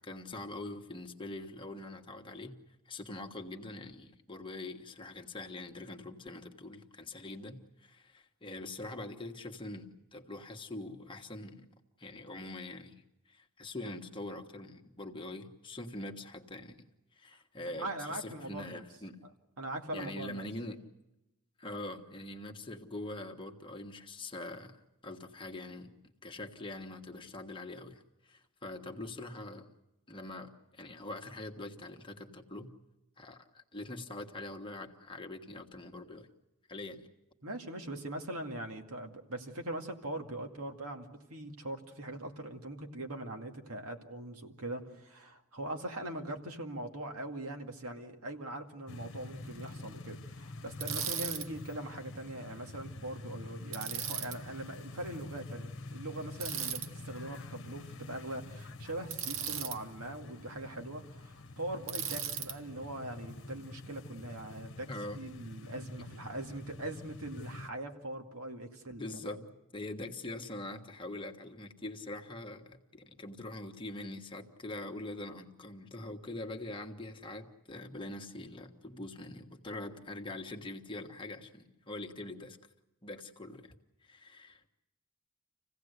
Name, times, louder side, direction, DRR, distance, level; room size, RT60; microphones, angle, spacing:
voice 1, 0.0-2.5 2.8-11.7 12.0-13.0 13.3-16.9 17.2-19.2 19.9-20.8 21.6-25.9 26.2-29.7 30.1-32.7 33.2-36.3 36.7-37.1 64.9-65.2 68.9-69.4 69.7-82.6 83.0-83.7 84.0-84.7, left 2 dB, 25° left, 4 dB, 1.4 m, -43 dB
voice 2, 17.7-18.8 19.6-20.4 37.4-64.9 65.1-69.4, right 1 dB, 90° right, 3 dB, 2.2 m, -41 dB
sound 1, 48.9-67.7, left 2 dB, 60° left, 1.2 m, -47 dB
Bicycle, 50.8-51.5 53.7-54.4 56.4-56.9 59.1-59.8 61.9-62.6, right 8 dB, 65° right, 1.0 m, -36 dB
27.0 x 16.5 x 8.1 m, 0.98 s
head